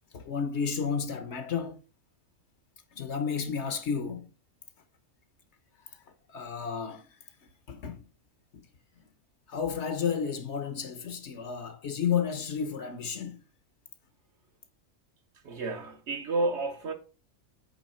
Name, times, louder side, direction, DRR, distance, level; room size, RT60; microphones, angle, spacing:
voice 1, 0.1-1.8 2.9-4.3 6.3-7.1 7.7-8.1 8.5-8.6 9.5-13.4, left 6 dB, 60° left, 1.0 m, -32 dB
voice 2, 15.4-16.9, right 2 dB, 60° right, 1.1 m, -31 dB
8.3 x 3.4 x 4.2 m
omnidirectional pair, 1.4 m